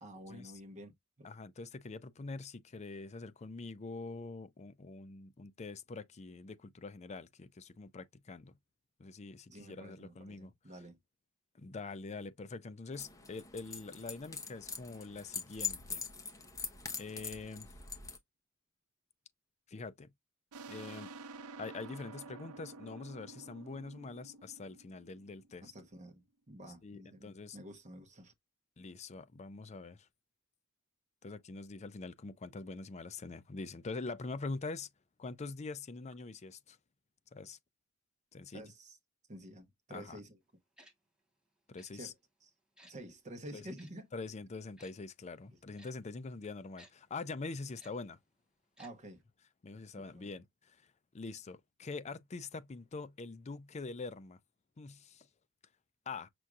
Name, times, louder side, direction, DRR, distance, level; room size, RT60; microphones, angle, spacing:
voice 1, 0.0-1.3 9.5-11.0 25.6-28.3 38.5-39.0 39.3-40.4 41.9-42.1 42.4-42.5 42.8-44.1 48.8-49.2 49.9-50.3, right 1 dB, 35° right, 1.0 m, -50 dB
voice 2, 1.2-8.5 9.0-10.5 11.6-16.0 17.0-17.7 19.7-20.1 20.7-21.1 21.6-25.6 26.8-27.6 28.8-30.1 31.2-34.9 35.2-36.8 37.3-37.6 38.3-38.6 39.9-40.2 41.7-42.1 43.5-43.6 44.1-48.2 49.6-50.8 51.1-54.4 54.8-55.3 56.1-56.3, left 3 dB, 30° left, 0.5 m, -44 dB
sound 1, 12.9-18.2, left 5 dB, 15° left, 0.9 m, -43 dB
sound 2, 20.5-25.8, right 3 dB, 80° right, 0.6 m, -50 dB
Tick-tock, 40.8-40.9 41.8-41.9 42.8-42.9 43.8-43.9 44.8-44.9 45.8-45.9 46.8-46.9 47.8-47.9 48.8-48.9 49.2-49.3, equal, 5° right, 1.2 m, -58 dB
6.1 x 2.6 x 2.3 m
head